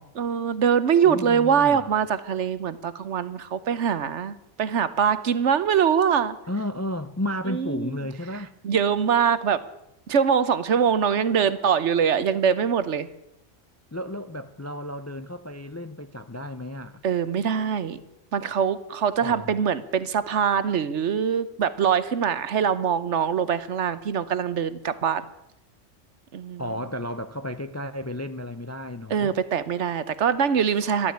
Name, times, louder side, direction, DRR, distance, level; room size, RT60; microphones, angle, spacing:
voice 1, 0.2-6.4 7.5-8.0 8.6-9.6 10.1-13.1 17.0-18.0 18.3-25.2 26.3-26.6 29.1-31.1, right 7 dB, 70° right, 1.1 m, -23 dB
voice 2, 1.0-1.9 6.5-8.5 13.9-17.0 19.2-19.5 26.6-29.4, left 1 dB, 20° left, 0.4 m, -33 dB
13.0 x 12.5 x 8.7 m
omnidirectional pair, 1.3 m